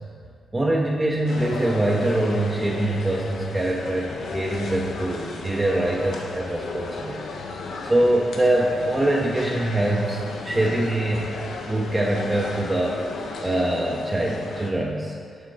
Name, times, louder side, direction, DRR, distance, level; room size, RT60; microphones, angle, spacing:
voice 1, 0.5-7.2 7.9-11.3 11.7-13.1 13.4-15.1, right 1 dB, 20° right, -2 dB, 0.6 m, -23 dB
sound 1, 1.3-14.7, left 3 dB, 75° left, 0.6 m, -34 dB
6.1 x 4.3 x 4.8 m, 2.2 s
cardioid pair, 85°, 0 cm